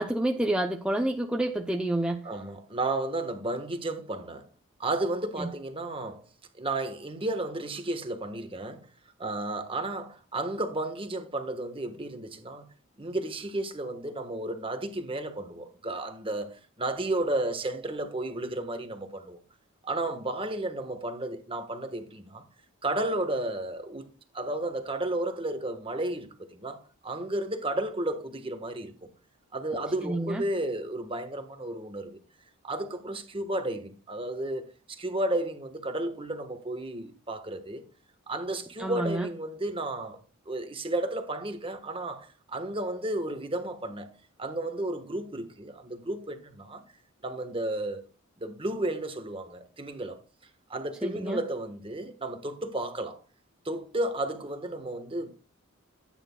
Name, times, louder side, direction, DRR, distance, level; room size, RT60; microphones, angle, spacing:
voice 1, 0.0-2.3 5.4-5.5 30.0-30.4 38.8-39.3 51.0-51.4, right 1 dB, 5° right, 0.6 m, -28 dB
voice 2, 2.2-4.5 4.8-6.2 6.5-8.9 9.2-12.7 13.0-19.4 19.8-22.4 22.8-24.1 24.3-29.1 29.5-32.2 32.6-37.8 38.3-40.2 40.5-44.1 44.4-46.8 47.2-48.0 48.4-50.2 50.7-53.2 53.6-55.3, right 2 dB, 25° right, 1.3 m, -33 dB
15.0 x 9.1 x 2.3 m
head